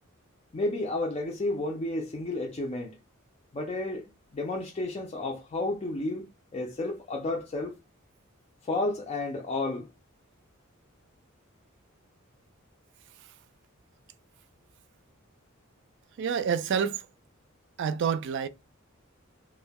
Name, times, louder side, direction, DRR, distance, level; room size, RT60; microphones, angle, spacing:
voice 1, 0.5-3.0 3.5-4.0 4.3-6.3 6.5-7.7 8.6-9.9, left 2 dB, 30° left, 0.4 m, -31 dB
voice 2, 16.2-17.1 17.8-18.5, right 7 dB, 60° right, 0.3 m, -28 dB
2.2 x 2.1 x 3.3 m
head